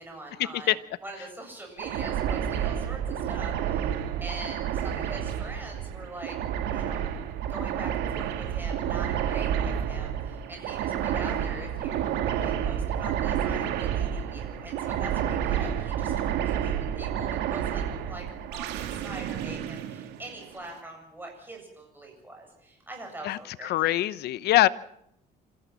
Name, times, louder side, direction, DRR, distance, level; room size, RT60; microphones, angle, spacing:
voice 1, 0.0-6.4 6.7-7.0 7.5-18.2 18.5-23.9, right 1 dB, 10° right, 8.0 m, -43 dB
sound 1, 1.8-20.6, right 9 dB, 90° right, 2.1 m, -30 dB
voice 2, 23.2-24.7, left 15 dB, 75° left, 0.9 m, -23 dB
26.5 x 15.0 x 7.5 m
cardioid pair, 110°, 17 cm